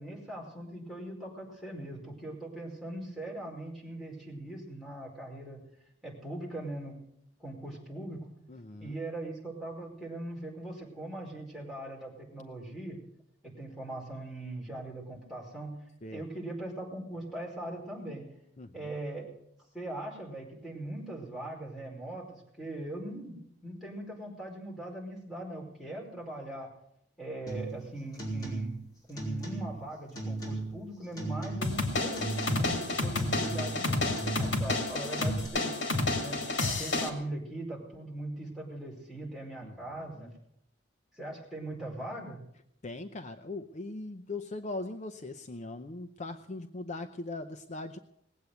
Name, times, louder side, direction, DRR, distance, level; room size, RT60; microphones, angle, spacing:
voice 1, 0.0-5.6 6.0-6.9 7.4-8.3 8.8-13.0 13.4-15.8 16.1-18.2 18.7-19.3 19.7-23.4 23.6-26.7 27.2-28.8 29.1-32.3 32.6-35.7 36.2-36.4 36.8-40.3 41.2-42.4, right 1 dB, ahead, -4 dB, 4.9 m, -40 dB
voice 2, 8.5-9.0 16.0-16.2 18.6-18.9 39.6-39.8 40.1-40.3 42.8-48.0, left 2 dB, 40° left, 8 dB, 0.6 m, -40 dB
sound 1, 27.5-27.8 28.1-28.8 29.1-29.8 30.2-30.8 31.2-31.9 32.2-32.8 33.2-33.8 34.1-34.8 35.2-35.5, right 2 dB, 20° left, 5.3 m, -36 dB
sound 2, 31.6-37.1, left 2 dB, 75° left, 2.5 m, -30 dB
19.5 x 8.3 x 8.0 m, 0.76 s
head